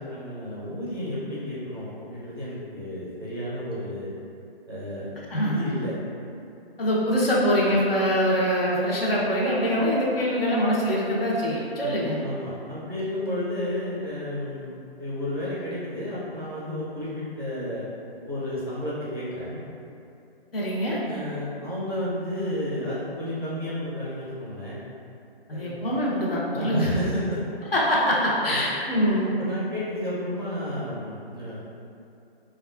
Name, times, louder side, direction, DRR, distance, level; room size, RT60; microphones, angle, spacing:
voice 1, 0.0-4.1 4.7-5.9 11.8-12.0 12.2-17.9 18.2-19.6 21.0-24.8 25.5-25.8 26.5-27.4 28.4-28.6 29.2-31.6, left 1 dB, 25° right, -10 dB, 0.4 m, -32 dB
voice 2, 5.3-5.6 6.8-12.2 20.5-21.0 25.5-26.9 27.7-29.3, equal, 65° left, -5 dB, 0.9 m, -24 dB
4.3 x 2.3 x 2.3 m, 2.7 s
hypercardioid pair, 175°, 31 cm